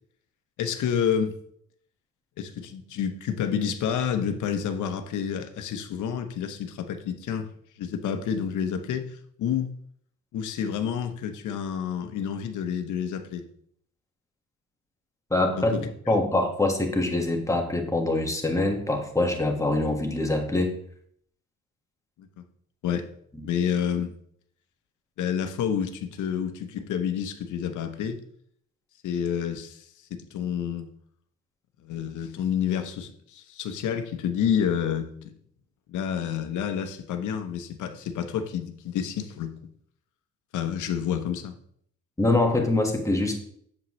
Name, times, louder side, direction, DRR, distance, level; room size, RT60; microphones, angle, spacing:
voice 1, 0.6-1.4 2.4-7.5 7.8-9.7 10.3-13.4 15.6-15.9 22.4-22.5 22.8-23.1 23.4-24.1 25.2-28.2 29.0-30.9 31.8-35.3 35.9-39.5 40.5-41.5, left 8 dB, 80° left, 7 dB, 1.0 m, -29 dB
voice 2, 15.3-20.8 42.2-43.4, left 2 dB, 10° left, 2 dB, 1.6 m, -24 dB
7.6 x 7.4 x 3.2 m, 0.65 s
cardioid pair, 90°, 30 cm